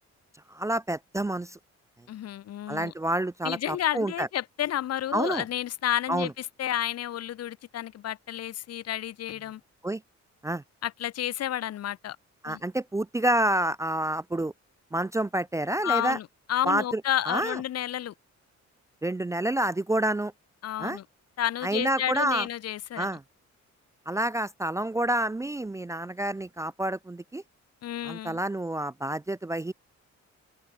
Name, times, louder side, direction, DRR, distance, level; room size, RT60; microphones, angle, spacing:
voice 1, 0.5-1.6 2.7-4.3 5.1-5.4 6.1-6.3 9.8-10.0 10.4-10.6 12.4-14.5 14.9-16.2 16.7-17.0 17.3-17.6 19.0-20.3 20.8-21.0 21.6-22.5 23.0-23.2 24.1-27.4 28.0-29.7, right 1 dB, 10° right, 0.5 m, -28 dB
voice 2, 2.1-2.9 3.4-9.6 10.8-12.2 12.5-12.6 15.8-18.1 20.6-21.0 21.4-23.1 27.8-28.4, left 12 dB, 60° left, 0.9 m, -31 dB
open air
cardioid pair, 160°, 29 cm